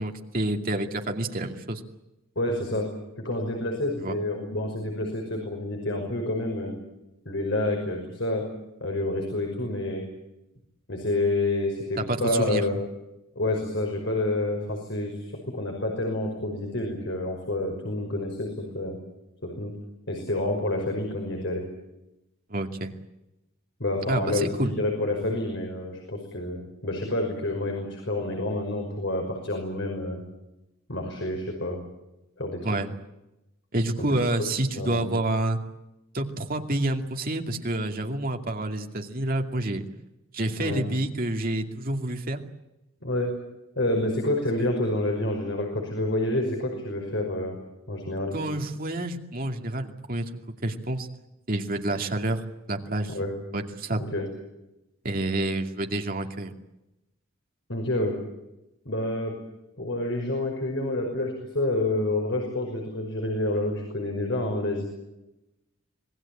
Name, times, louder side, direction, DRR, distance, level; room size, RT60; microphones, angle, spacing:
voice 1, 0.0-1.8 4.0-4.1 12.1-12.6 22.5-22.9 24.1-24.7 32.6-32.9 33.7-35.6 36.1-39.9 40.3-42.4 48.3-50.3 50.6-51.1 51.5-52.4 52.7-53.1 53.5-54.0 55.0-56.5, right 1 dB, 45° right, 4 dB, 2.5 m, -28 dB
voice 2, 2.4-2.9 3.2-6.7 7.3-8.4 8.8-10.0 10.9-12.8 13.4-19.0 19.4-19.7 20.1-21.6 23.8-30.2 30.9-31.8 32.4-32.8 34.0-34.1 34.7-35.2 40.6-40.8 43.0-43.3 43.8-47.6 47.9-48.4 53.1-53.3 54.0-54.3 57.7-58.2 58.9-59.4 59.8-64.9, left 1 dB, 60° left, 2 dB, 5.7 m, -28 dB
26.0 x 20.0 x 8.7 m, 0.94 s
head